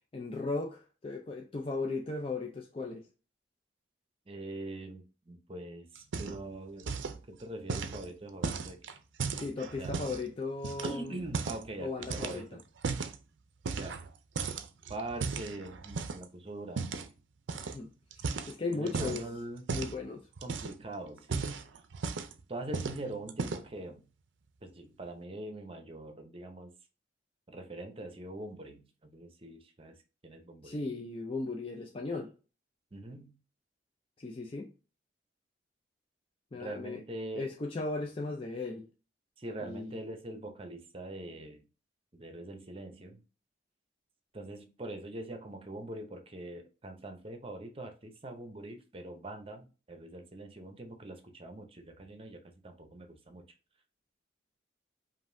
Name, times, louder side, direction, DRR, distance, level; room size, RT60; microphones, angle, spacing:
voice 1, 0.1-3.1 9.4-11.2 11.8-12.4 17.5-19.3 19.7-20.3 30.6-32.3 34.2-34.7 36.5-37.0 37.4-38.9 39.6-40.0, left 3 dB, 30° left, 0.5 m, -37 dB
voice 2, 4.3-7.0 7.3-8.8 9.8-10.0 10.8-12.6 13.7-14.0 14.9-16.9 18.7-19.7 20.4-21.8 22.5-24.0 24.6-26.7 27.5-30.8 32.9-33.4 36.5-37.5 39.4-41.7 42.1-43.2 44.3-53.5, right 1 dB, 30° right, 0.7 m, -43 dB
sound 1, 6.0-6.5 6.8-7.2 7.7-10.2 10.6-11.7 12.0-13.2 13.6-14.1 14.4-16.3 16.8-17.1 17.5-17.8 18.1-19.2 19.7-20.0 20.4-20.8 21.2-22.4 22.7-23.0 23.3-23.8, right 4 dB, 90° right, 0.5 m, -36 dB
5.2 x 2.6 x 2.6 m
head